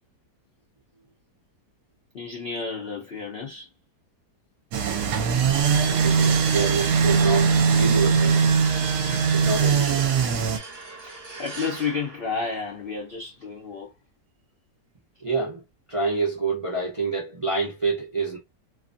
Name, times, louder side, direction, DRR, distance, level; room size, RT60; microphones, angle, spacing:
voice 1, 2.1-3.7 11.0-13.9, left 5 dB, 90° left, 0.5 m, -32 dB
sound 1, 4.7-10.6, right 6 dB, 75° right, 1.2 m, -21 dB
voice 2, 5.8-8.4 9.3-10.1 15.2-15.6 15.9-18.4, right 4 dB, 50° right, 0.3 m, -27 dB
sound 2, 9.5-13.1, right 3 dB, 30° right, 0.8 m, -42 dB
2.8 x 2.5 x 2.5 m
omnidirectional pair, 1.8 m